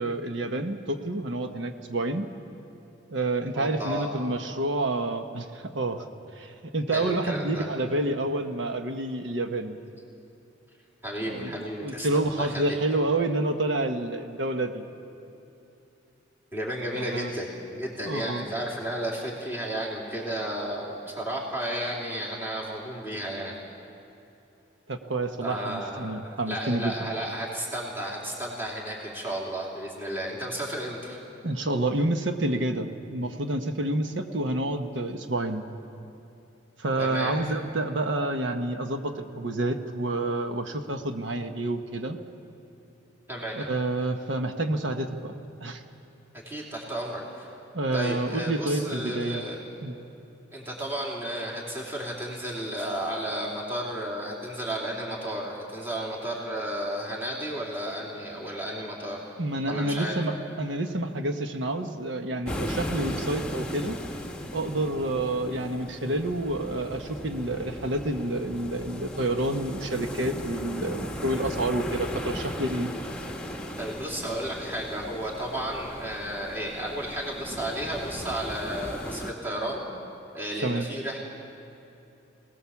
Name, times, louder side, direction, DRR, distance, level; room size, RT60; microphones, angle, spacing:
voice 1, 0.0-2.3 3.1-6.1 6.4-9.8 11.2-11.5 11.8-14.8 16.9-17.3 18.1-18.5 24.9-26.9 31.4-35.6 36.8-42.2 43.5-45.3 45.6-45.8 47.7-49.5 49.8-49.9 59.4-64.0 64.5-72.9 80.6-80.9, right 2 dB, 75° right, 6 dB, 1.1 m, -29 dB
voice 2, 3.5-4.2 6.9-7.7 11.0-12.8 16.5-23.5 25.4-26.2 26.5-31.2 37.0-37.4 43.3-43.7 46.4-47.5 47.9-49.6 50.5-59.3 59.7-60.2 73.8-79.9 80.3-81.2, right 1 dB, 10° right, -4 dB, 3.1 m, -33 dB
sound 1, 62.4-79.3, equal, 5° left, 1.4 m, -36 dB
25.0 x 18.5 x 7.2 m, 2.9 s
head